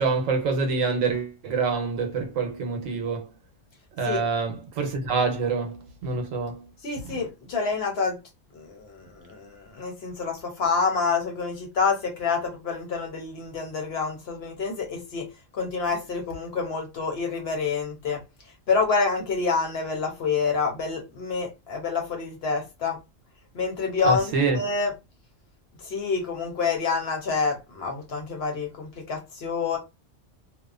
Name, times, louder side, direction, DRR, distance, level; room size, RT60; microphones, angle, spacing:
voice 1, 0.0-3.3 4.0-6.6 7.0-7.2 24.0-24.6, right 4 dB, 80° right, 1.1 m, -26 dB
voice 2, 6.8-8.2 8.5-15.3 15.5-18.2 18.7-23.0 23.5-24.9 25.8-29.8, left 5 dB, 55° left, 0.9 m, -27 dB
2.8 x 2.1 x 2.3 m
omnidirectional pair, 1.3 m